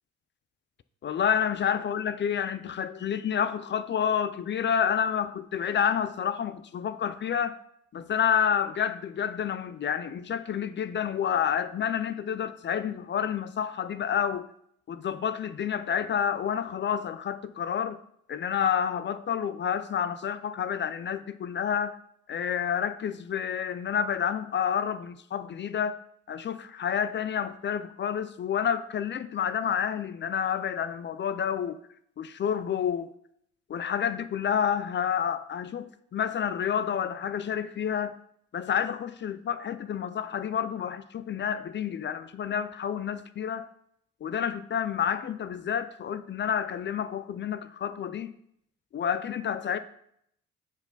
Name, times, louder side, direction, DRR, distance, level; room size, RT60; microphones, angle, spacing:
voice 1, 1.0-7.6 7.9-14.5 14.9-18.0 18.3-22.0 22.3-26.0 26.3-31.8 32.2-33.1 33.7-38.2 38.5-43.7 44.2-48.3 48.9-49.8, left 8 dB, 40° left, 0.4 m, -29 dB
6.6 x 4.8 x 3.9 m
cardioid pair, 90°, 30 cm